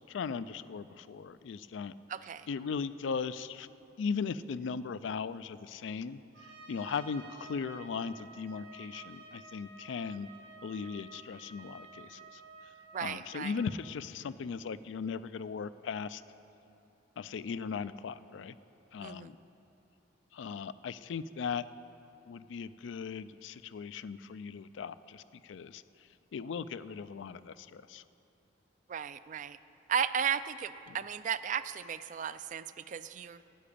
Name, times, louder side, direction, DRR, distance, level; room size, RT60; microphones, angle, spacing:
voice 1, 0.1-1.9 2.5-3.7 4.0-6.2 6.7-10.3 10.6-12.4 13.0-16.2 17.2-18.5 18.9-19.4 20.3-21.6 22.3-25.8 26.3-28.0 30.9-31.0, left 5 dB, 80° left, 15 dB, 0.4 m, -38 dB
voice 2, 2.1-2.5 12.9-13.5 19.0-19.3 28.9-29.6 29.9-33.4, right 8 dB, 40° right, 14 dB, 0.3 m, -35 dB
Trumpet, 6.3-13.7, right 4 dB, 70° right, 2.1 m, -52 dB
10.0 x 8.7 x 8.4 m, 2.9 s
head